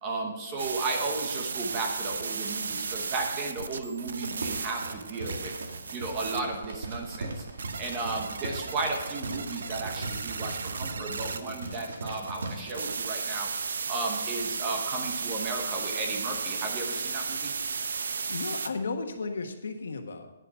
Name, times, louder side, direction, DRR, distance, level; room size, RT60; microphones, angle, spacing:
voice 1, 0.0-5.5 5.9-13.5 13.9-17.5, right 3 dB, 15° right, 2 dB, 1.0 m, -34 dB
sound 1, 0.6-18.7, right 5 dB, 70° right, 0.7 m, -35 dB
sound 2, 4.3-12.7, right 2 dB, 90° right, 2.0 m, -39 dB
voice 2, 18.0-20.3, left 4 dB, 75° left, 5 dB, 1.3 m, -34 dB
9.9 x 6.9 x 5.6 m, 1.0 s
hypercardioid pair, 180°, 0 cm